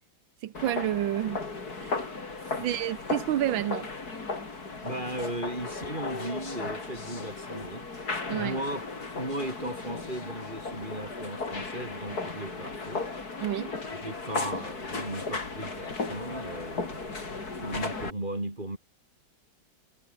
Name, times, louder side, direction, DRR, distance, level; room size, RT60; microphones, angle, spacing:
voice 1, 0.4-1.4 1.8-2.0 2.6-3.9 8.3-8.6 13.4-13.7, right 12 dB, 90° right, 1.7 m, -29 dB
sound 1, 0.5-18.1, left 3 dB, 50° left, 4.1 m, -36 dB
voice 2, 4.8-7.9 8.4-8.9 9.2-13.1 13.9-18.8, right 1 dB, 25° right, 4.4 m, -36 dB
omnidirectional pair, 2.1 m